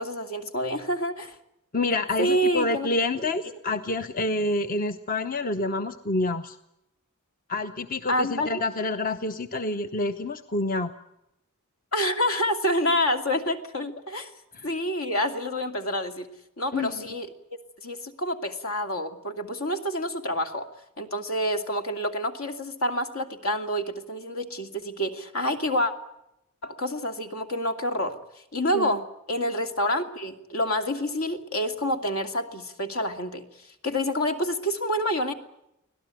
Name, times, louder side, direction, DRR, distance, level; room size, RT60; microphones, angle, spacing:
voice 1, 0.0-1.4 2.2-2.9 8.1-8.6 11.9-14.3 14.6-16.3 16.6-20.7 21.0-25.9 26.6-28.1 28.5-29.0 29.3-33.4 33.8-35.3, equal, 70° left, 7 dB, 2.6 m, -28 dB
voice 2, 1.7-6.6 7.5-10.9 14.5-14.7 16.7-17.1 28.7-29.0, left 2 dB, 40° left, 9 dB, 0.9 m, -28 dB
25.0 x 17.5 x 9.2 m, 0.84 s
head